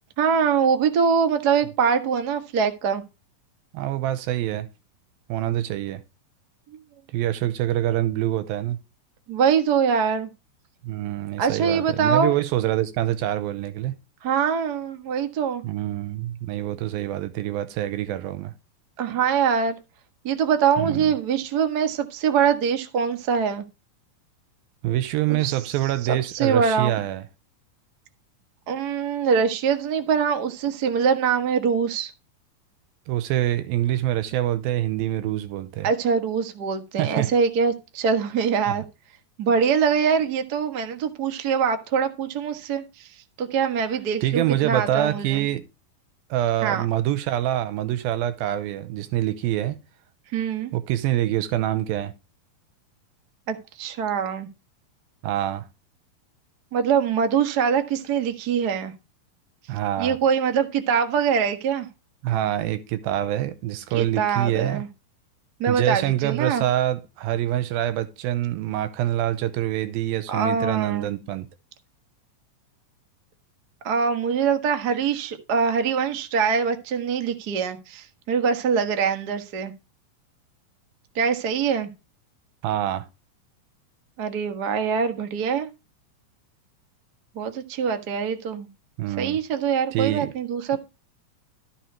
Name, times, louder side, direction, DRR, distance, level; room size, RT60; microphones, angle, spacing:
voice 1, 0.2-3.0 9.3-10.3 11.4-12.3 14.2-15.6 19.0-19.7 20.2-23.6 25.3-25.6 26.1-26.9 28.7-32.1 35.8-38.8 39.4-43.1 43.4-45.4 46.6-46.8 50.3-50.7 53.5-54.5 56.7-58.9 60.0-61.9 63.9-64.9 65.6-66.6 70.3-71.1 73.8-79.7 81.1-81.9 84.2-85.7 87.3-88.7 89.2-90.8, right 6 dB, 55° right, 1.0 m, -23 dB
voice 2, 3.7-4.7 5.3-6.0 7.1-8.8 10.8-13.9 15.6-18.5 20.8-21.0 24.8-27.2 33.1-35.9 37.0-37.3 44.2-45.6 46.3-49.8 50.7-52.1 55.2-55.7 59.7-60.2 62.2-64.8 65.7-71.5 82.6-83.1 89.0-89.4 89.9-90.3, right 13 dB, 85° right, 2.5 m, -25 dB
13.5 x 5.5 x 4.5 m
omnidirectional pair, 4.2 m